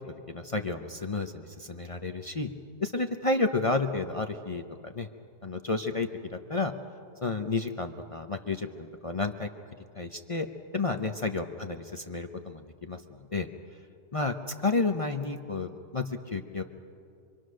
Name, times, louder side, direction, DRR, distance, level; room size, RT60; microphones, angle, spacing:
voice 1, 0.3-2.5 2.8-5.1 5.4-6.1 6.5-6.7 7.2-9.5 10.0-10.5 10.7-13.0 13.3-13.5 14.1-14.3 14.6-16.6, left 3 dB, 50° left, 5 dB, 0.4 m, -31 dB
25.0 x 25.0 x 6.4 m, 2.5 s
omnidirectional pair, 1.9 m